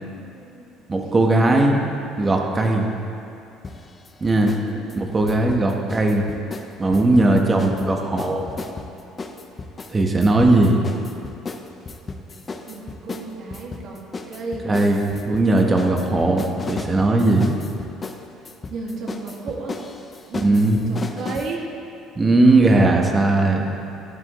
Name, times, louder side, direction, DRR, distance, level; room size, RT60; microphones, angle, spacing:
voice 1, 0.2-0.7 1.0-1.2 4.5-4.9 7.2-7.8 12.6-14.7 16.1-16.5 18.7-19.8 20.3-21.7, right 3 dB, 55° right, -1 dB, 1.8 m, -34 dB
voice 2, 0.9-1.9 2.2-2.9 4.2-4.5 5.0-6.2 6.8-8.5 9.9-10.8 14.6-17.5 20.3-20.9 22.2-23.6, right 2 dB, 20° right, 1 dB, 1.1 m, -18 dB
sound 1, 3.6-4.6 4.9-7.8 8.2-21.5, left 3 dB, 20° left, 0.6 m, -35 dB
12.5 x 12.0 x 3.1 m, 2.6 s
cardioid pair, 150°, 0 cm